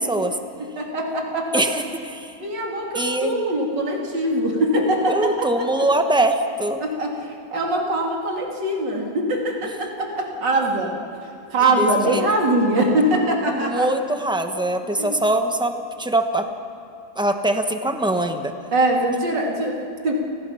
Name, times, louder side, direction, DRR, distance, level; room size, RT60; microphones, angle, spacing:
voice 1, 0.8-1.6 2.4-5.7 6.8-11.0 11.2-13.9 15.0-15.2 18.7-20.1, right 1 dB, 85° right, 0 dB, 3.3 m, -22 dB
voice 2, 1.5-2.3 2.9-3.3 5.1-6.8 11.8-12.2 13.5-16.5 17.2-18.5, right 1 dB, 5° right, 6 dB, 0.8 m, -22 dB
29.5 x 19.5 x 5.7 m, 2.6 s
omnidirectional pair, 1.9 m